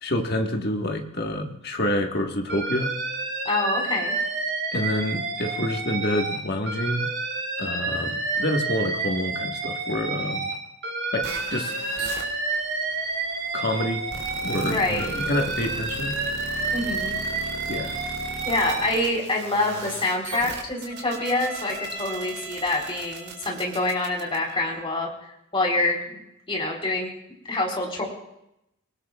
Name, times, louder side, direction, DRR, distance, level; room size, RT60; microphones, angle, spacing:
voice 1, 0.0-2.9 4.7-7.1 7.6-10.5 11.1-11.7 13.5-14.1 14.4-16.2 17.7-18.0, left 1 dB, 45° left, 2 dB, 1.6 m, -27 dB
Alarm, 2.5-6.4 6.7-10.5 10.8-14.7 15.0-18.9, right 3 dB, 55° right, 7.7 m, -29 dB
voice 2, 3.4-4.1 14.6-15.1 16.7-17.2 18.4-26.2 26.5-27.1 27.5-28.0, left 2 dB, 25° left, -1 dB, 3.8 m, -26 dB
sound 1, 11.2-24.8, right 3 dB, 75° right, 3.7 m, -38 dB
29.5 x 19.5 x 2.4 m, 0.82 s
head